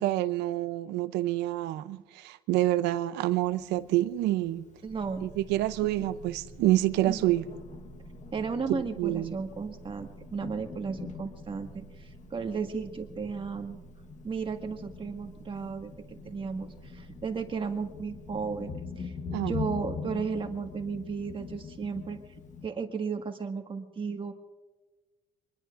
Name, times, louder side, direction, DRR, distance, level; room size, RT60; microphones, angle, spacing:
voice 1, 0.0-4.6 5.2-7.4 8.7-9.3 19.3-19.5, right 15 dB, 90° right, 0.7 m, -27 dB
Thunder, 3.3-22.7, left 5 dB, 45° left, 1.4 m, -44 dB
sound 1, 4.8-18.9, right 3 dB, 15° right, 3.0 m, -50 dB
voice 2, 4.8-5.3 5.8-5.9 7.1-7.3 8.3-13.8 14.2-18.7 19.0-19.1 19.5-22.2 22.6-24.3, right 5 dB, 30° right, 1.9 m, -34 dB
25.0 x 21.0 x 2.6 m
cardioid pair, 110°, 17 cm